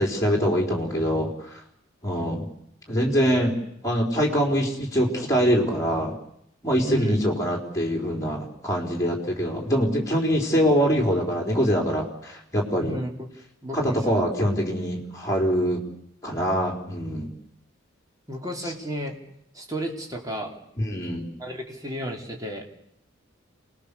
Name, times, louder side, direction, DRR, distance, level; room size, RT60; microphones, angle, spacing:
voice 1, 0.0-1.6 2.0-2.4 2.9-3.5 3.8-6.1 6.6-13.0 13.7-15.8 16.2-17.3 20.8-21.2, equal, 15° left, -1 dB, 4.3 m, -24 dB
voice 2, 6.8-7.2 12.8-13.1 13.6-14.2 18.3-19.2 19.5-20.6 21.4-22.7, equal, 20° right, 0 dB, 3.3 m, -32 dB
28.0 x 20.0 x 6.9 m, 0.75 s
head